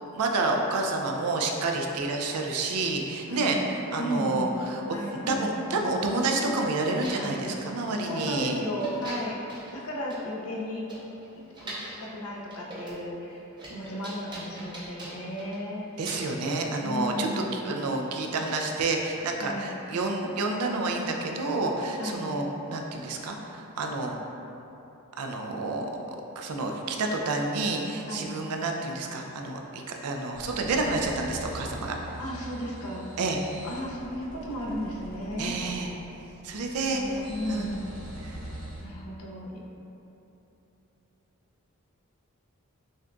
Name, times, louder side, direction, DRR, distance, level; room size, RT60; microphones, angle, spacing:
voice 1, 0.1-3.6 3.9-4.8 5.3-8.6 16.0-24.2 25.2-25.9 26.4-32.0 33.2-33.4 35.4-35.9 36.4-37.2 37.5-37.7 38.2-38.4, right 2 dB, 85° right, 2 dB, 0.4 m, -29 dB
voice 2, 3.3-3.6 4.0-4.6 4.9-5.8 7.2-7.5 8.0-10.9 11.6-15.9 16.8-17.6 19.4-19.7 22.0-22.3 28.1-28.4 32.2-33.0 33.6-35.6 36.9-37.8 38.8-39.6, equal, 75° left, -3 dB, 0.6 m, -34 dB
sound 1, 7.0-7.7 8.2-8.5 8.8-9.8 10.1-10.2 10.6-10.7 10.9-12.1 12.5-13.0 13.3-15.7 16.1-16.4 17.7-17.9 18.5-18.6, right 1 dB, 20° right, 0.5 m, -42 dB
sound 2, 30.3-38.8, right 1 dB, 55° right, 1.0 m, -43 dB
6.3 x 2.3 x 2.5 m, 3.0 s
head